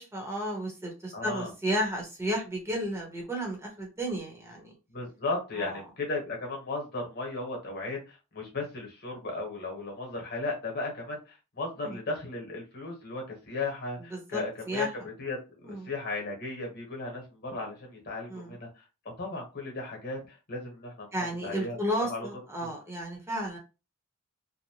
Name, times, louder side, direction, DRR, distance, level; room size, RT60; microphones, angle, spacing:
voice 1, 0.0-4.7 5.6-5.8 11.8-12.0 14.1-14.4 14.7-14.9 15.6-15.9 18.3-18.6 21.1-23.6, equal, 10° right, 0 dB, 0.8 m, -33 dB
voice 2, 1.1-1.5 4.9-18.8 19.2-21.1 21.4-21.8 22.1-22.3 22.6-22.7, left 3 dB, 50° left, 1 dB, 1.1 m, -36 dB
2.6 x 2.1 x 2.9 m, 0.29 s
head